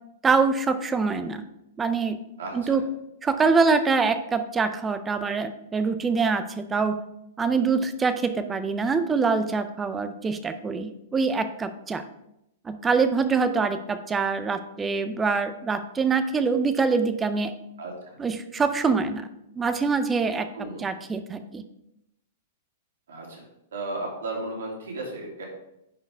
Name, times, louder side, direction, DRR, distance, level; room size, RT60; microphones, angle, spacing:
voice 1, 0.2-1.5 1.8-2.2 2.5-2.8 3.2-7.0 7.4-12.0 12.6-17.5 18.2-19.3 19.6-20.5 20.8-21.6, right 4 dB, 15° right, 10 dB, 0.5 m, -24 dB
voice 2, 2.4-2.8 17.8-18.2 20.5-20.8 23.1-23.4 23.7-25.5, right 2 dB, 85° right, -1 dB, 2.6 m, -34 dB
10.5 x 4.5 x 3.5 m, 0.83 s
hypercardioid pair, 145°, 0 cm